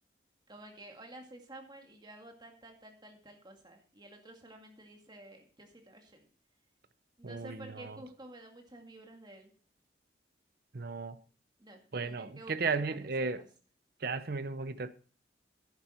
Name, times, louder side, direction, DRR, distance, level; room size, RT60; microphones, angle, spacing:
voice 1, 0.5-6.3 7.2-9.5 11.6-12.8 13.2-13.5, right 1 dB, 25° right, 2.1 m, -51 dB
voice 2, 7.2-8.0 10.7-11.2 11.9-13.4 14.0-14.9, right 4 dB, 55° right, 0.7 m, -35 dB
11.0 x 10.5 x 4.4 m
head